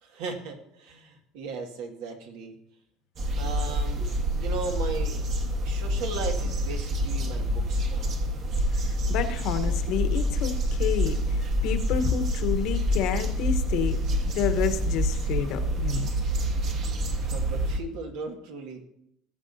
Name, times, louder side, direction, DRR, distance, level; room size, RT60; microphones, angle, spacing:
voice 1, 0.0-2.6 3.4-5.2 5.6-8.1 17.2-18.8, right 4 dB, 80° right, 3 dB, 1.8 m, -37 dB
sound 1, 3.2-17.8, equal, 50° right, 1.4 m, -27 dB
voice 2, 8.9-14.0 14.2-16.1, left 9 dB, 65° left, 9 dB, 1.0 m, -29 dB
18.5 x 7.3 x 2.7 m, 0.77 s
cardioid pair, 130°, 0 cm